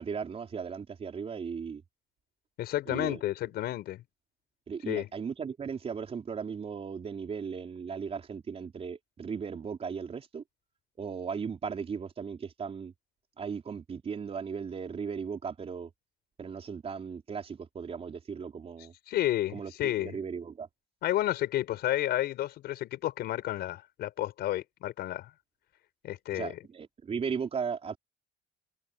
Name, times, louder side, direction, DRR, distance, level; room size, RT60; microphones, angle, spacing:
voice 1, 0.0-1.8 2.9-3.2 4.7-10.4 11.0-12.9 13.4-15.9 16.4-18.9 19.5-20.7 26.3-28.0, right 6 dB, 35° right, 4.5 m, -37 dB
voice 2, 2.6-4.0 4.9-5.1 19.1-20.2 21.0-25.3 26.0-26.6, left 14 dB, 75° left, 4.9 m, -31 dB
cardioid pair, 110°, 17 cm